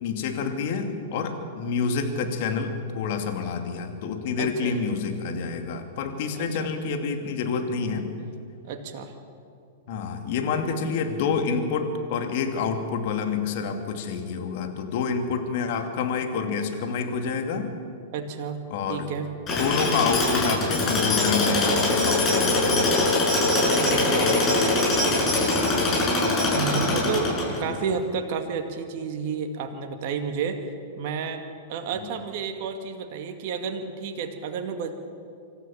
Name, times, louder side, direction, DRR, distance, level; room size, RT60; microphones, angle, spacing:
voice 1, 0.0-8.1 9.9-17.7 18.7-19.1 19.5-23.1 26.2-26.3 27.6-27.8 31.9-32.1, left 5 dB, 55° left, 5 dB, 2.6 m, -28 dB
voice 2, 4.4-4.9 6.3-6.7 8.6-9.1 18.1-18.6 18.9-19.3 23.6-24.9 26.5-30.6 31.0-31.4 31.7-34.9, right 5 dB, 55° right, 4 dB, 2.1 m, -31 dB
Tools, 19.5-27.8, left 2 dB, 30° left, 7.0 m, -22 dB
25.5 x 14.0 x 7.3 m, 2.4 s
hypercardioid pair, 105°, 0 cm